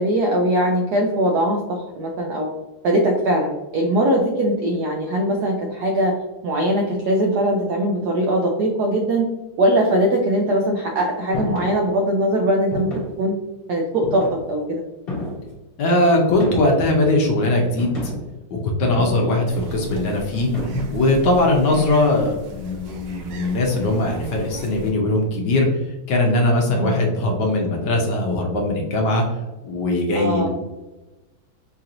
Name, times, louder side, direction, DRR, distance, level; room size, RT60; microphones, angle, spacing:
voice 1, 0.0-2.5 2.8-6.1 6.4-9.3 9.6-13.3 13.7-14.8 19.2-19.4 21.8-21.9 26.7-27.0 30.1-30.5, right 1 dB, 85° right, 0 dB, 0.8 m, -21 dB
sound 1, 11.3-11.8 12.7-13.2 14.0-14.6 15.1-15.5 16.3-16.9 17.8-18.3 18.8-19.4 20.5-21.1, left 1 dB, 30° left, 1.4 m, -30 dB
voice 2, 15.8-18.1 18.5-20.5 20.9-25.8 26.1-29.2 29.6-30.5, left 2 dB, 65° left, 0 dB, 1.2 m, -20 dB
sound 2, 19.5-24.9, right 1 dB, 70° right, 1.1 m, -38 dB
4.7 x 2.9 x 2.5 m, 1.1 s
omnidirectional pair, 2.3 m